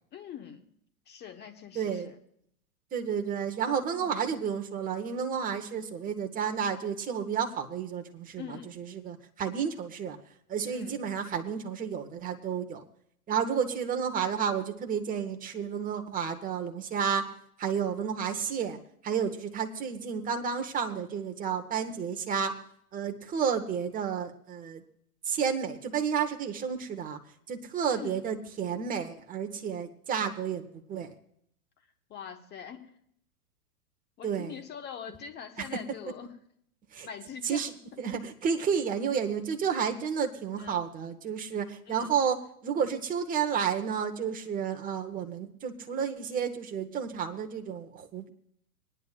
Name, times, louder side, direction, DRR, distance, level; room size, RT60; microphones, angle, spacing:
voice 1, 0.1-0.6 1.1-2.2 3.6-4.2 8.4-8.7 10.7-11.0 28.0-28.2 32.1-32.9 34.2-36.3 37.0-37.7 40.6-40.8 41.9-42.1, left 8 dB, 20° left, 6 dB, 1.1 m, -43 dB
voice 2, 1.7-2.1 2.9-10.2 10.5-12.9 13.3-17.3 17.6-22.6 22.9-24.8 25.2-27.2 27.5-31.1 34.2-34.6 35.6-35.8 36.9-37.1 37.4-37.7 38.0-42.4 42.6-48.3, right 7 dB, 20° right, 5 dB, 1.0 m, -31 dB
25.0 x 9.9 x 2.4 m, 0.69 s
hypercardioid pair, 110°, 45 cm